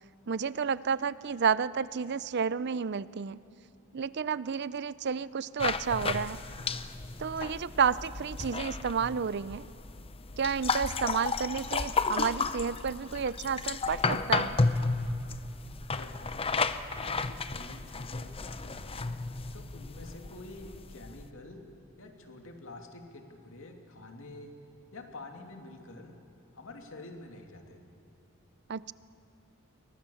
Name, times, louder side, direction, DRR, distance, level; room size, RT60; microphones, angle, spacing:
voice 1, 0.3-3.4 3.9-6.4 7.2-9.7 10.4-14.6 28.7-28.9, right 6 dB, 55° right, 18 dB, 0.5 m, -31 dB
sound 1, 5.6-21.3, left 4 dB, 25° left, 0.7 m, -33 dB
voice 2, 15.9-16.6 17.0-19.1 19.5-21.7 22.0-24.5 24.9-26.2 26.5-27.8, left 2 dB, 65° left, 3 dB, 2.7 m, -48 dB
29.5 x 23.0 x 7.1 m, 2.7 s
head